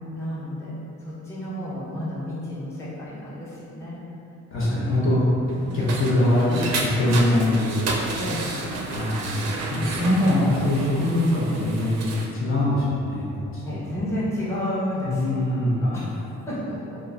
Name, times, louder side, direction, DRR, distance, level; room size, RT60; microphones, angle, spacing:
voice 1, 0.1-4.0 8.2-8.6 9.7-10.2 13.6-17.0, left 1 dB, 10° left, -10 dB, 0.7 m, -32 dB
voice 2, 4.5-7.8 8.9-9.3 9.7-12.0 12.3-13.9 15.0-16.0, left 1 dB, 45° left, -8 dB, 0.8 m, -22 dB
sound 1, 5.5-12.3, right 3 dB, 60° right, 0.4 m, -31 dB
2.9 x 2.2 x 2.4 m, 2.8 s
cardioid pair, 90°, 30 cm